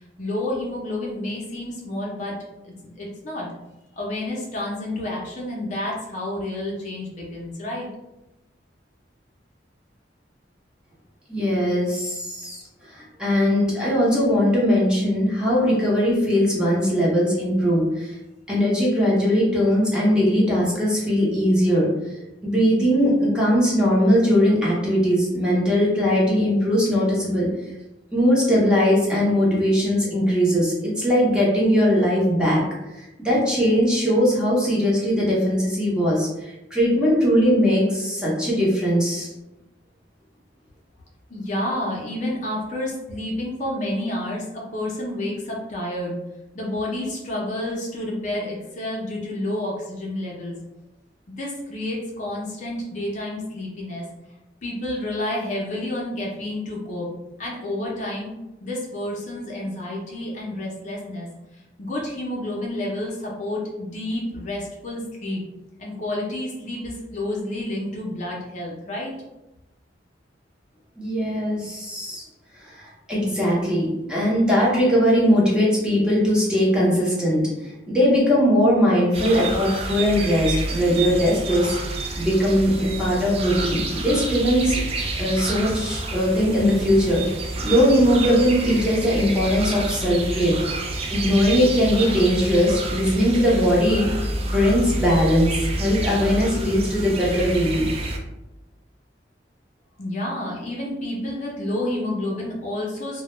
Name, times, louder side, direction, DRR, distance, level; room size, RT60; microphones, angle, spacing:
voice 1, 0.2-2.3 2.6-3.5 4.0-7.9 41.3-46.1 46.5-50.5 51.3-54.1 54.6-57.1 57.4-58.3 58.6-61.3 61.5-65.4 65.8-69.1 100.0-103.2, left 1 dB, 45° left, -3 dB, 0.5 m, -29 dB
voice 2, 11.3-12.6 12.9-18.1 18.5-21.9 22.4-27.5 28.1-32.6 33.0-39.3 71.0-72.2 72.6-84.8 85.2-87.2 87.6-90.6 91.1-94.1 94.4-97.9, equal, 5° right, -6 dB, 0.7 m, -20 dB
sound 1, 79.1-98.2, right 2 dB, 35° right, 0.3 m, -29 dB
2.2 x 2.1 x 3.0 m, 0.97 s
head